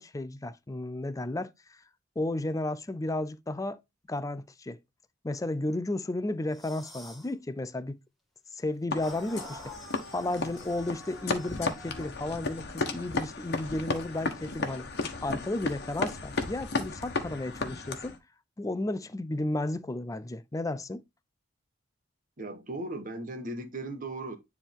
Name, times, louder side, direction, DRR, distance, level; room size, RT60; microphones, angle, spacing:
voice 1, 0.0-1.8 2.2-3.8 4.1-4.8 5.2-8.0 8.5-9.7 10.1-14.9 15.2-18.2 18.6-21.0, left 2 dB, 20° left, 0.4 m, -33 dB
sound 1, 6.5-7.3 9.0-12.1, left 1 dB, ahead, 1.8 m, -48 dB
sound 2, 8.9-18.2, left 3 dB, 60° left, 1.2 m, -34 dB
voice 2, 22.4-24.4, right 2 dB, 45° right, 1.3 m, -37 dB
9.8 x 3.6 x 3.5 m
head